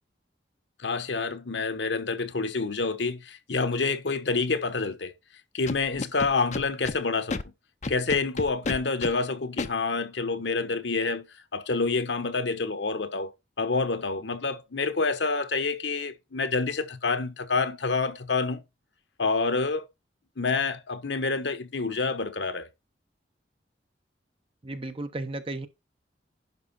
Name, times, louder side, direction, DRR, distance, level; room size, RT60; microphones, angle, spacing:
voice 1, 0.8-5.1 5.5-7.4 7.9-11.2 11.5-18.6 19.2-19.9 20.4-22.7, left 4 dB, 75° left, 1.1 m, -28 dB
Scratching (performance technique), 5.7-7.0 7.3-7.4 7.8-9.1 9.6-9.7, left 3 dB, 40° left, 0.6 m, -31 dB
voice 2, 24.6-25.7, right 2 dB, 30° right, 1.1 m, -34 dB
11.0 x 5.3 x 4.1 m
head